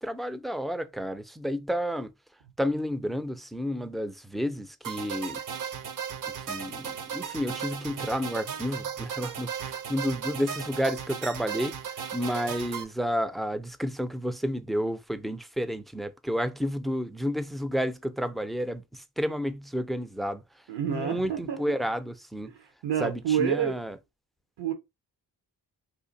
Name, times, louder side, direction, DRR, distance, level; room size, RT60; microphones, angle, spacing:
voice 1, 0.0-2.1 2.6-5.4 6.5-11.8 12.1-20.4 20.9-22.5 23.0-24.0, equal, ahead, 0.3 m, -31 dB
sound 1, 4.8-12.8, right 7 dB, 50° right, 0.7 m, -36 dB
voice 2, 20.7-21.6 22.5-23.7 24.6-24.7, right 9 dB, 75° right, 0.9 m, -28 dB
2.7 x 2.5 x 3.9 m
cardioid pair, 65°, 42 cm